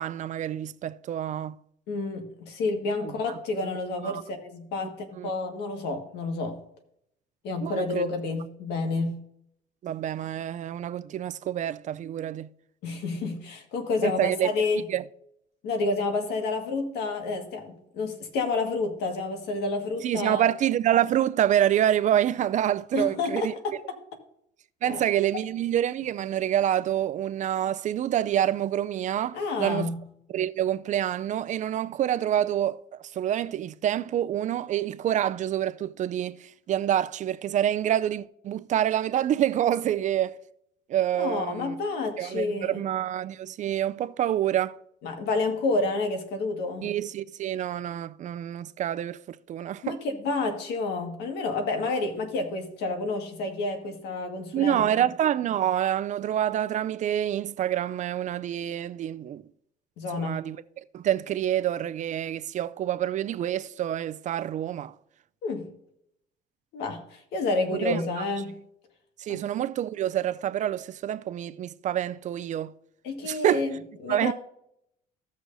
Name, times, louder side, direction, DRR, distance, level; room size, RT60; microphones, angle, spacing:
voice 1, 0.0-1.5 3.0-3.1 4.0-4.2 5.2-5.3 7.6-8.0 9.8-12.5 14.0-14.5 14.9-15.0 20.0-23.5 24.8-29.9 30.3-32.8 33.1-40.4 40.9-41.8 42.2-44.8 46.8-50.0 54.5-59.4 60.1-60.6 60.9-64.9 67.7-68.2 69.2-72.7 73.2-73.6 74.1-74.3, right 11 dB, 45° right, 0.4 m, -27 dB
voice 2, 1.9-6.6 7.4-9.2 12.8-14.8 15.6-20.5 22.9-24.0 24.8-25.0 29.3-30.0 41.2-42.8 45.0-46.9 49.8-55.1 60.0-60.4 65.4-65.7 66.7-68.6 69.3-69.4 73.0-74.3, left 3 dB, 80° left, 1.7 m, -29 dB
16.0 x 6.3 x 2.6 m
cardioid pair, 110°, 17 cm